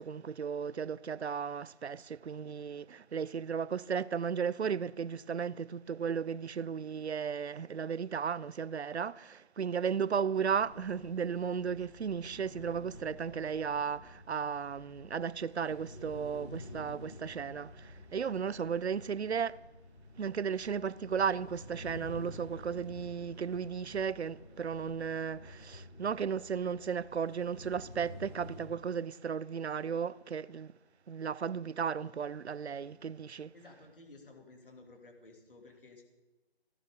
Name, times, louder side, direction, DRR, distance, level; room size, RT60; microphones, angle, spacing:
voice 1, 0.0-19.6 20.2-30.7 31.1-33.5, right 7 dB, 85° right, 0.6 m, -35 dB
sound 1, 10.5-28.7, left 1 dB, 75° left, 5.2 m, -50 dB
voice 2, 33.5-36.0, left 2 dB, 55° left, 2.8 m, -54 dB
17.0 x 12.0 x 3.7 m
figure-of-eight pair, 180°, 32 cm